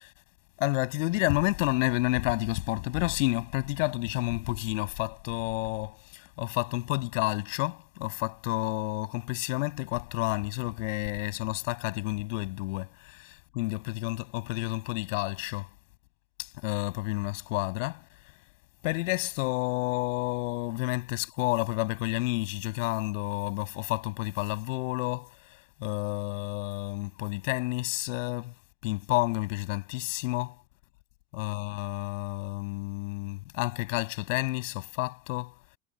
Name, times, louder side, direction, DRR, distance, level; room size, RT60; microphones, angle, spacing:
voice 1, 0.6-15.7 16.4-18.0 18.8-28.5 28.8-30.5 31.3-35.6, left 22 dB, 85° left, 6.4 m, -30 dB
cardioid pair, 160°, 38 cm